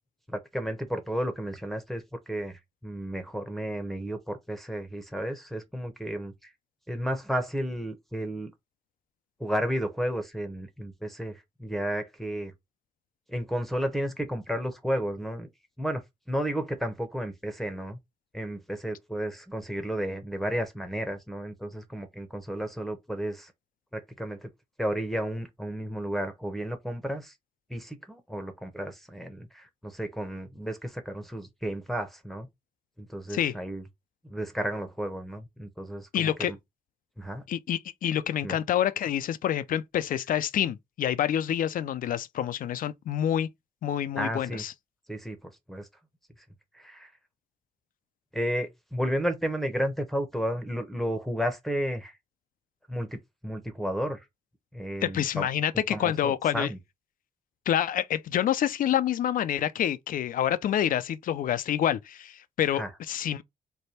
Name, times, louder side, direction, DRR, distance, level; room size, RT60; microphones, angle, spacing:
voice 1, 0.3-6.5 6.9-8.5 9.4-12.5 13.3-15.5 15.8-16.0 16.3-18.0 18.3-23.5 23.9-24.5 24.8-27.3 27.7-32.5 33.0-33.8 34.2-36.6 37.2-37.5 38.4-38.6 44.2-44.6 45.1-45.9 46.7-47.1 48.3-52.2 52.9-54.3 54.7-55.5 55.9-56.8 62.7-62.9, equal, ahead, 0.9 m, -32 dB
voice 2, 36.1-36.5 37.5-43.5 43.8-44.7 55.0-56.7 57.7-63.4, left 10 dB, 60° left, 0.4 m, -27 dB
3.3 x 2.2 x 4.2 m
supercardioid pair, 55°, 16 cm